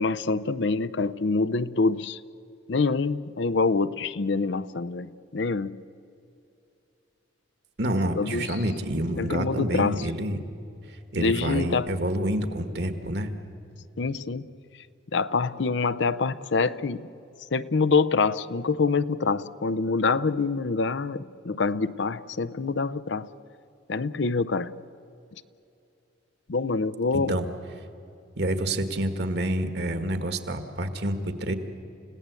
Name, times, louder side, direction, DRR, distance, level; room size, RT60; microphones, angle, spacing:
voice 1, 0.0-2.2 2.7-5.8 8.2-8.6 9.2-10.1 11.2-11.9 14.0-14.5 15.1-17.1 17.5-23.3 23.9-24.7 26.5-27.3, left 4 dB, 70° left, 15 dB, 0.6 m, -26 dB
voice 2, 7.8-10.4 10.9-13.3 27.1-27.4 28.3-31.5, right 1 dB, 60° right, 8 dB, 1.7 m, -28 dB
29.0 x 16.5 x 8.3 m, 2.7 s
head